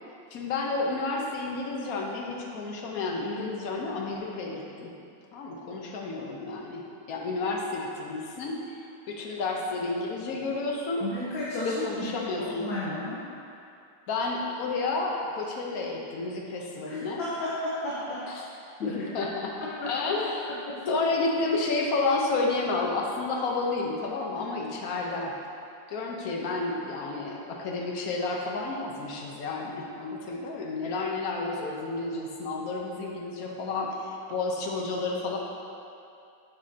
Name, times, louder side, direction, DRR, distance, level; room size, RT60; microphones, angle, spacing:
voice 1, 0.3-4.9 5.3-6.8 7.1-8.8 9.1-11.0 11.6-12.6 14.1-17.2 18.3-18.4 18.8-20.5 20.9-25.3 25.9-35.4, left 3 dB, 60° left, -1 dB, 1.2 m, -31 dB
voice 2, 11.0-12.1 12.4-13.2 16.9-18.2 18.8-19.0 19.8-19.9 20.7-20.8, left 2 dB, 90° left, -8 dB, 1.9 m, -32 dB
8.1 x 7.6 x 2.8 m, 2.6 s
omnidirectional pair, 2.0 m